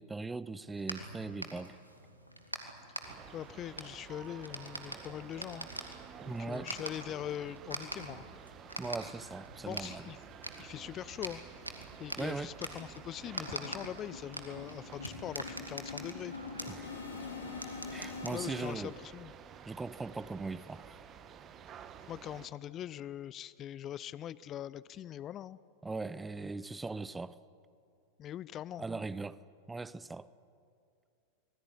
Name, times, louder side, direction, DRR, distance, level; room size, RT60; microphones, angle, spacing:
voice 1, 0.0-1.8 6.3-6.7 8.8-10.0 12.2-12.5 16.7-16.9 17.9-18.9 19.7-21.0 25.8-27.4 28.8-29.4 29.7-30.3, right 3 dB, 10° right, 0.8 m, -39 dB
sound 1, 0.6-19.0, right 1 dB, 85° right, 2.5 m, -46 dB
sound 2, 3.0-22.5, right 8 dB, 30° right, 1.5 m, -52 dB
voice 2, 3.3-5.7 6.2-8.3 9.6-10.2 10.6-11.4 12.0-16.3 18.3-19.3 22.1-25.6 28.2-28.8, left 11 dB, 30° left, 0.6 m, -42 dB
sound 3, 11.5-11.6 11.9-12.0 12.4-12.5 12.8-18.8, left 4 dB, 75° left, 5.1 m, -45 dB
26.0 x 20.0 x 9.7 m
figure-of-eight pair, 90°, 0 cm